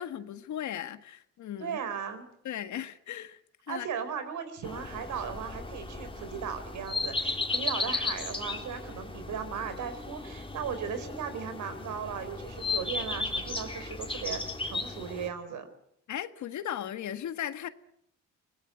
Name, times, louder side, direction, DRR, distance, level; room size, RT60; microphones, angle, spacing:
voice 1, 0.0-1.8 2.4-3.4 3.7-3.9 16.1-17.7, left 10 dB, 70° left, 11 dB, 1.6 m, -37 dB
voice 2, 1.6-2.3 3.7-15.7, right 7 dB, 75° right, 10 dB, 4.4 m, -37 dB
sound 1, 4.6-15.3, left 3 dB, 15° left, 3.3 m, -35 dB
24.5 x 18.5 x 9.6 m, 0.71 s
cardioid pair, 90°, 30 cm